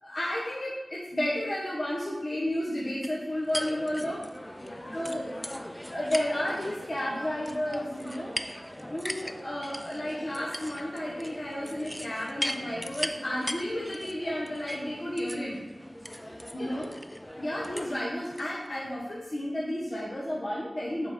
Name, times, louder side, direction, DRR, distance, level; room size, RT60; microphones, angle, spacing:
voice 1, 0.0-4.3 4.9-5.3 5.9-8.4 8.9-15.6 16.5-16.8 17.4-21.1, left 1 dB, 45° left, -5 dB, 1.0 m, -32 dB
sound 1, 3.0-18.5, equal, 10° left, 0.4 m, -39 dB
voice 2, 4.6-5.8 16.1-16.9, left 1 dB, 75° left, -5 dB, 2.2 m, -46 dB
7.1 x 4.4 x 4.2 m, 1.1 s
wide cardioid pair, 60°, 0 cm